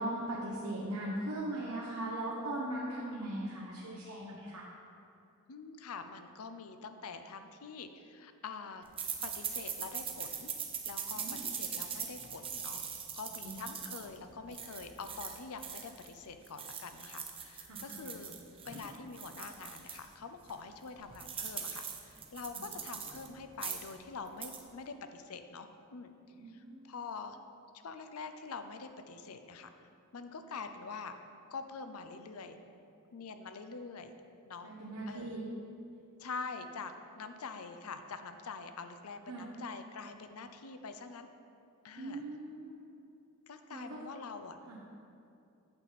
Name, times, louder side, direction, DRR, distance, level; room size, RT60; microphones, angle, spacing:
voice 1, 0.0-4.6 11.1-11.4 13.4-13.6 17.7-18.1 26.4-26.9 34.6-35.4 39.3-39.4 42.0-43.0 43.7-44.0 44.7-44.8, right 1 dB, 85° right, -5 dB, 1.0 m, -39 dB
voice 2, 5.5-8.8 9.2-10.5 10.9-12.8 13.1-18.3 18.6-26.1 26.5-27.4 27.7-29.7 30.1-31.1 31.5-32.6 33.1-34.1 34.5-34.7 35.1-35.4 36.2-41.3 41.8-42.2 43.5-44.6, left 4 dB, 75° left, 9 dB, 0.6 m, -45 dB
sound 1, 9.0-16.1 16.4-20.1 20.5-20.6 20.8-23.3 23.5-24.0 24.3-24.6, right 7 dB, 25° right, 0.7 m, -41 dB
8.8 x 7.5 x 4.1 m, 2.6 s
head